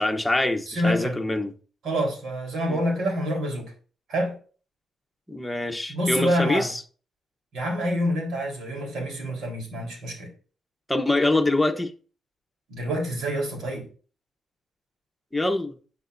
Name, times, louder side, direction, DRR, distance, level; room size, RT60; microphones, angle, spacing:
voice 1, 0.0-1.5 2.7-2.8 5.3-6.8 10.9-11.9 15.3-15.7, left 2 dB, 5° left, 1.1 m, -24 dB
voice 2, 0.7-1.2 1.8-3.7 4.1-4.3 5.9-6.7 7.5-10.3 12.7-13.9, equal, 80° right, 4.0 m, -27 dB
12.0 x 8.1 x 2.7 m
cardioid pair, 130°, 0 cm